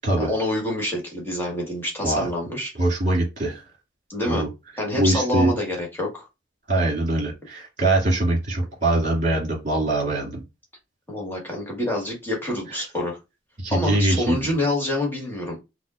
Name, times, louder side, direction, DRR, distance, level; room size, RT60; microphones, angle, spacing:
voice 1, 0.2-2.7 4.1-4.5 4.8-6.3 11.1-13.2 13.7-15.6, left 1 dB, 10° left, -1 dB, 1.6 m, -27 dB
voice 2, 2.8-3.6 4.3-4.5 5.0-5.5 6.7-10.4 13.6-14.5, right 2 dB, 45° right, -2 dB, 2.2 m, -22 dB
5.3 x 2.3 x 2.5 m, 0.25 s
head